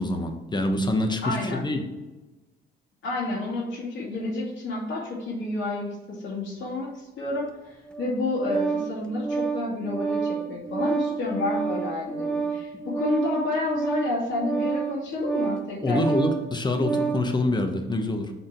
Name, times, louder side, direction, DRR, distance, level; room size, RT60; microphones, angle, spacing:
voice 1, 0.0-1.8 15.8-18.3, left 1 dB, 20° left, 5 dB, 1.1 m, -26 dB
voice 2, 1.2-1.6 3.0-16.0, left 2 dB, 75° left, -5 dB, 2.4 m, -30 dB
Organ, 7.9-17.3, right 5 dB, 5° left, 0.8 m, -29 dB
6.7 x 3.7 x 5.9 m, 1.1 s
cardioid pair, 90°, 20 cm